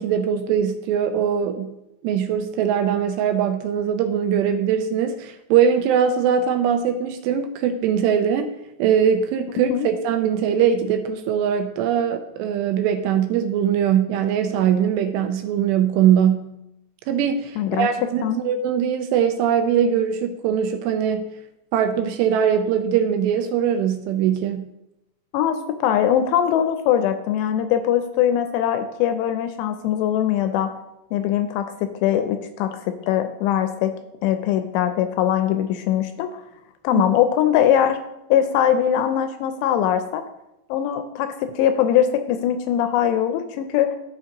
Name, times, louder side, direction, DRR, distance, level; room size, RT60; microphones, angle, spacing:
voice 1, 0.0-1.7 2.0-8.5 8.8-16.5 17.1-21.3 21.7-24.7 36.9-37.1, right 8 dB, 80° right, 6 dB, 2.6 m, -21 dB
voice 2, 17.6-17.9 18.2-18.4 25.3-30.7 31.1-33.9 34.2-36.3 36.8-38.0 38.3-40.2 40.7-44.0, left 10 dB, 85° left, 8 dB, 2.6 m, -21 dB
13.5 x 5.0 x 2.9 m, 0.86 s
omnidirectional pair, 5.2 m